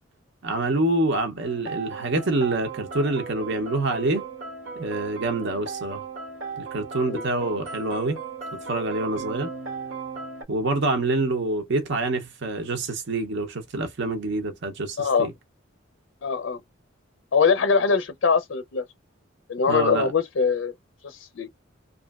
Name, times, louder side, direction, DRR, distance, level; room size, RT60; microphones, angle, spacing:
voice 1, 0.4-4.2 4.8-6.0 6.6-8.2 8.7-9.5 10.5-15.3 19.7-20.1, right 2 dB, 60° right, 0.7 m, -26 dB
sound 1, 1.4-10.4, right 5 dB, 90° right, 1.3 m, -36 dB
voice 2, 15.0-15.3 16.2-16.6 17.3-18.8 19.5-20.7 21.0-21.5, left 5 dB, 65° left, 0.4 m, -22 dB
2.9 x 2.4 x 2.3 m
head